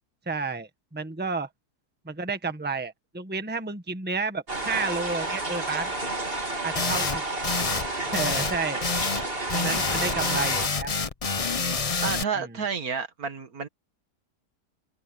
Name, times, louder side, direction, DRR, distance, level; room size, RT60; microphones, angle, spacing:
voice 1, 0.2-1.5 2.0-5.9 6.6-7.2 8.1-8.8 9.5-10.9 12.4-12.6, right 4 dB, 5° right, 1.3 m, -31 dB
sound 1, 4.5-10.7, right 2 dB, 35° right, 3.6 m, -31 dB
sound 2, 6.8-7.2 7.4-7.9 8.1-8.6 8.8-9.2 9.5-12.2, left 4 dB, 35° left, 0.6 m, -27 dB
voice 2, 12.0-13.7, right 6 dB, 60° right, 2.0 m, -30 dB
omnidirectional pair, 1.8 m